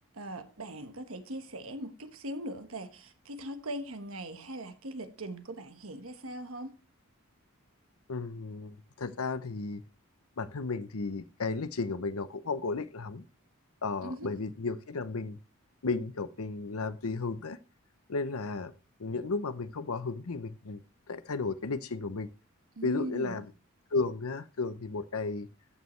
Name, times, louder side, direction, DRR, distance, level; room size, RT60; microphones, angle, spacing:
voice 1, 0.1-6.7 14.0-14.3 22.8-23.5, right 1 dB, 70° right, 1.3 m, -40 dB
voice 2, 8.1-9.8 10.4-13.2 13.8-15.4 15.8-17.6 18.1-18.7 19.0-22.3 22.8-23.5 23.9-25.5, left 3 dB, 80° left, 0.7 m, -34 dB
14.0 x 6.4 x 3.1 m
head